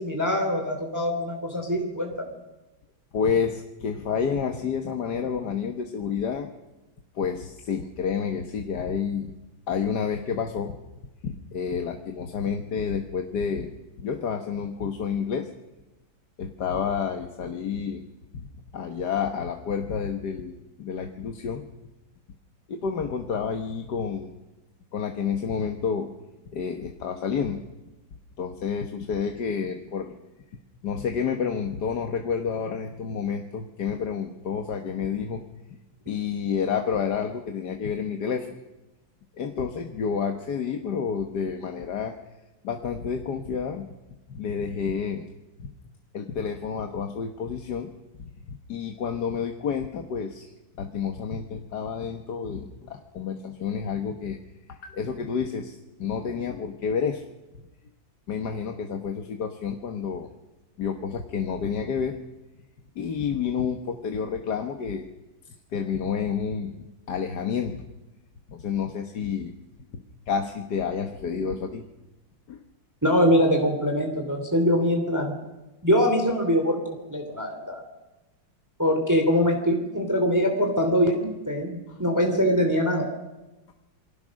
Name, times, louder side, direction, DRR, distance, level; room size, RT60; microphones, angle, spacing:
voice 1, 0.0-2.3 73.0-75.3 75.8-77.8 78.8-83.1, equal, 10° right, 3 dB, 2.8 m, -23 dB
voice 2, 3.1-6.5 7.2-9.3 9.7-10.8 11.2-13.7 14.0-15.5 16.4-18.0 18.3-21.7 22.7-24.3 24.9-26.1 26.5-27.6 28.4-30.2 30.8-35.4 36.1-38.5 39.4-42.1 42.6-43.9 44.3-45.3 45.6-45.7 46.1-47.9 48.2-50.5 50.8-54.4 54.7-57.2 58.3-60.3 60.8-62.2 63.0-65.1 65.5-67.8 68.5-69.5 69.9-71.9 72.5-72.6 81.9-82.0, left 6 dB, 60° left, 5 dB, 1.8 m, -29 dB
27.5 x 20.5 x 6.4 m, 1.1 s
omnidirectional pair, 2.1 m